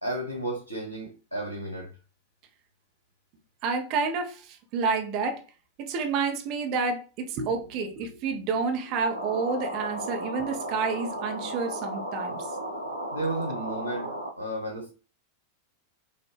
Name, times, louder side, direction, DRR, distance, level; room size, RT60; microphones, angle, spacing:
voice 1, 0.0-1.9 13.1-14.1 14.4-14.9, right 1 dB, 85° left, 1.0 m, -33 dB
voice 2, 3.6-5.4 5.8-12.5, right 4 dB, 40° right, 1.0 m, -29 dB
sound 1, 9.1-14.3, right 1 dB, 90° right, 0.7 m, -35 dB
5.4 x 2.7 x 3.4 m
figure-of-eight pair, 90°, 0 cm